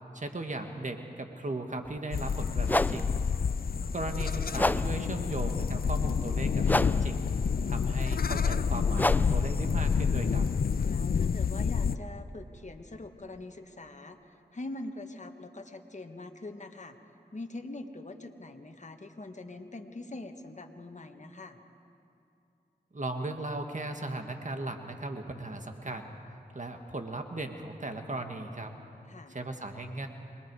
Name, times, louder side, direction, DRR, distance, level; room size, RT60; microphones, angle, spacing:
voice 1, 0.1-3.2 3.9-7.3 7.7-10.5 22.9-26.1 26.5-28.8 29.3-30.1, right 2 dB, 45° right, 5 dB, 1.8 m, -37 dB
sound 1, 1.8-2.0 2.6-11.4, left 1 dB, 10° left, 0.5 m, -33 dB
sound 2, 2.1-12.0, left 6 dB, 60° left, 0.5 m, -28 dB
voice 2, 7.7-8.0 10.8-17.0 17.3-21.6 29.1-29.4, left 2 dB, 45° left, 5 dB, 1.4 m, -43 dB
27.0 x 21.0 x 4.8 m, 2.7 s
cardioid pair, 40°, 17 cm